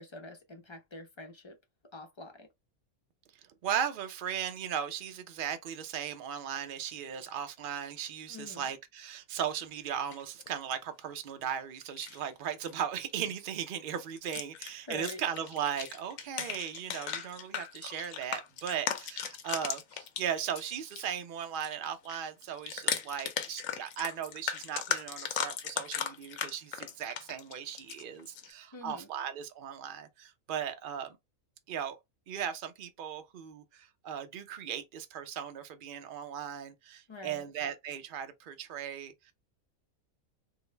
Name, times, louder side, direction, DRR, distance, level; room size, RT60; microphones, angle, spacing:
voice 1, 0.0-1.6 1.9-2.5 8.3-8.7 14.9-15.2 28.7-29.1 37.1-37.5, left 2 dB, 35° left, 0.5 m, -45 dB
voice 2, 3.6-31.2 31.7-32.0 32.3-39.3, right 8 dB, 55° right, 0.6 m, -37 dB
sound 1, 10.1-10.7 11.8-12.2 12.5-12.7 13.1-13.3 14.2-21.1 21.4-28.5, left 8 dB, 75° left, 1.0 m, -37 dB
3.7 x 2.1 x 3.1 m
omnidirectional pair, 1.4 m